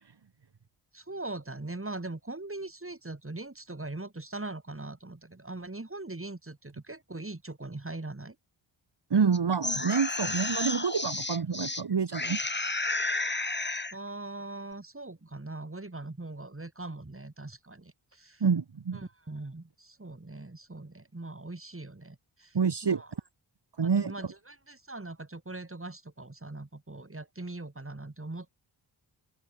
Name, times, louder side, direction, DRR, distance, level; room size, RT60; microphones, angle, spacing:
voice 1, 0.9-8.4 13.9-18.4 18.9-23.1 23.8-28.5, right 2 dB, 25° right, 5.8 m, -41 dB
voice 2, 9.1-12.4 18.4-19.0 22.5-23.0 23.8-24.1, right 6 dB, 55° right, 2.3 m, -27 dB
sound 1, 9.3-11.8 12.1-14.0, left 2 dB, 20° left, 2.2 m, -32 dB
cardioid pair, 45°, 50 cm